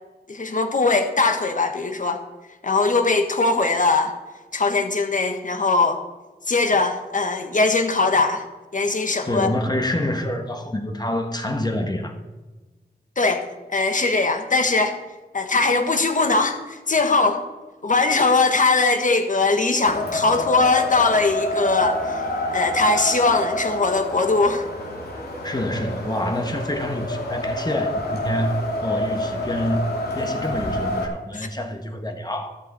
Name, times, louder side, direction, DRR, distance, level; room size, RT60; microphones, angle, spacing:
voice 1, 0.3-2.2 2.6-4.1 4.5-6.0 6.5-8.4 8.7-9.5 13.2-13.4 13.7-14.9 15.3-17.4 17.8-22.2 22.5-24.7 31.3-31.5, left 3 dB, 50° left, 1.4 m, -20 dB
voice 2, 9.2-12.1 25.4-29.9 30.1-32.6, left 1 dB, 25° left, 1.4 m, -27 dB
Wind, 19.8-31.0, left 1 dB, 70° left, 2.7 m, -28 dB
13.0 x 12.5 x 4.3 m
wide cardioid pair, 85°, 17 cm